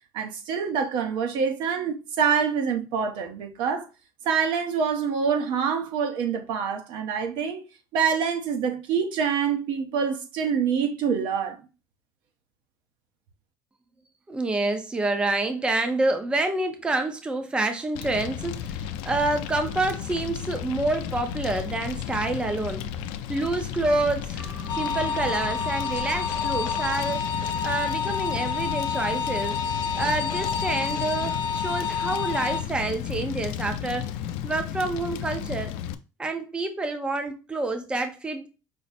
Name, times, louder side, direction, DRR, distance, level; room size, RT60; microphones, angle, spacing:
voice 1, 0.1-3.9 4.2-7.6 7.9-11.6, right 6 dB, 70° right, 0.9 m, -26 dB
voice 2, 14.3-22.9 23.3-27.2 27.6-29.6 30.0-34.1 34.4-35.7 36.2-38.5, right 2 dB, 10° right, 0.5 m, -28 dB
Fire, 17.9-35.9, left 9 dB, 90° left, 0.5 m, -33 dB
sound 1, 24.4-26.9, right 1 dB, 55° right, 1.5 m, -41 dB
sound 2, 24.7-32.6, left 6 dB, 50° left, 0.8 m, -29 dB
5.2 x 2.0 x 4.1 m
cardioid pair, 145°, 8 cm